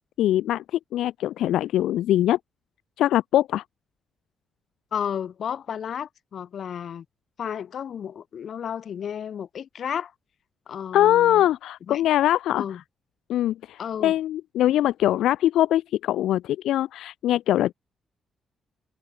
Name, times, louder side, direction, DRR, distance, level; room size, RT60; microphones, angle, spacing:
voice 1, 0.2-2.4 3.0-3.6 10.9-12.6 13.3-17.7, left 13 dB, 85° left, 0.9 m, -22 dB
voice 2, 4.9-7.0 7.4-10.1 10.7-11.4 11.9-12.0 12.5-12.8 13.8-14.1, left 8 dB, 65° left, 3.4 m, -32 dB
cardioid pair, 70°, 0 cm